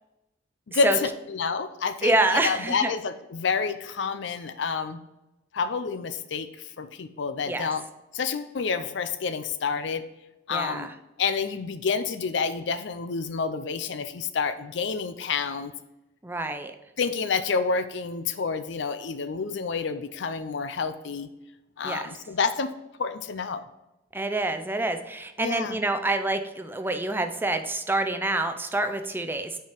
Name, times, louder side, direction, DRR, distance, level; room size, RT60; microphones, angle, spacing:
voice 1, 0.7-5.0 5.5-6.5 6.8-7.8 8.1-10.0 10.5-10.9 11.2-15.7 17.0-21.3 21.8-22.7 23.0-23.6 25.4-25.8, left 5 dB, 70° left, 11 dB, 0.5 m, -28 dB
voice 2, 2.0-2.9 7.5-7.7 10.5-10.9 16.2-16.7 21.8-22.1 24.1-29.6, right 2 dB, 10° right, 7 dB, 0.5 m, -27 dB
5.7 x 4.9 x 4.4 m, 0.96 s
head